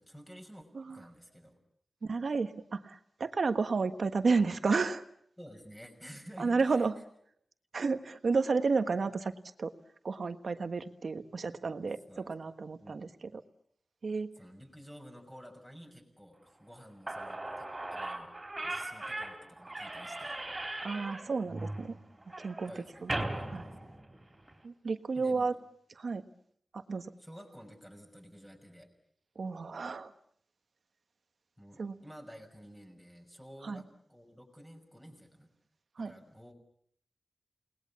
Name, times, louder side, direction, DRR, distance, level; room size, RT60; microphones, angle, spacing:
voice 1, 0.0-1.6 5.4-6.9 12.1-12.3 12.8-13.0 14.4-18.3 18.6-20.4 20.7-20.8 22.7-23.8 25.2-25.5 27.2-28.9 31.6-35.5 36.0-36.5, equal, 5° left, 3 dB, 6.1 m, -52 dB
voice 2, 2.0-5.0 6.4-6.9 7.7-9.3 9.6-9.7 10.0-12.0 12.3-13.4 14.0-14.3 20.8-22.0 22.4-22.7 23.0-23.1 23.5-23.6 24.6-25.5 26.0-26.2 26.7-27.1 29.3-30.1 31.8-31.9 33.6-33.8 36.0-36.1, right 4 dB, 65° right, 9 dB, 1.4 m, -31 dB
Slam / Squeak, 16.8-16.9 17.1-24.5, right 2 dB, 25° right, 3.8 m, -39 dB
29.5 x 20.5 x 7.2 m, 0.66 s
wide cardioid pair, 105°, 0 cm